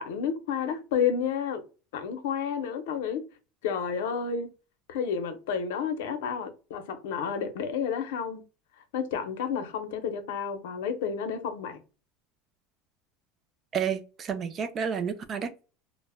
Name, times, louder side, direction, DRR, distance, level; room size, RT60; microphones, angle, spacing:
voice 1, 0.0-1.6 1.9-3.3 3.6-4.5 4.9-8.4 8.9-11.8, left 7 dB, 90° left, 0.5 m, -30 dB
voice 2, 13.7-15.7, right 7 dB, 25° right, 0.3 m, -31 dB
2.0 x 2.0 x 3.3 m
cardioid pair, 170°, 0 cm